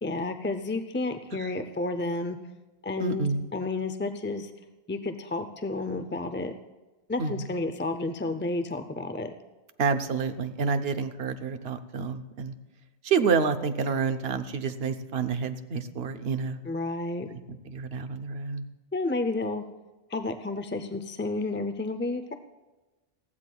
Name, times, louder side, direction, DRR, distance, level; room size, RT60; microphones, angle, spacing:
voice 1, 0.0-2.4 2.8-3.3 3.5-4.5 4.9-6.5 7.1-9.3 16.6-17.3 18.9-19.6 20.1-22.3, left 2 dB, 20° left, 8 dB, 0.3 m, -31 dB
voice 2, 3.0-3.4 7.2-7.5 9.8-12.5 13.0-16.6 17.7-18.6, right 5 dB, 75° right, 9 dB, 1.0 m, -28 dB
19.5 x 15.0 x 2.3 m, 1.1 s
omnidirectional pair, 1.0 m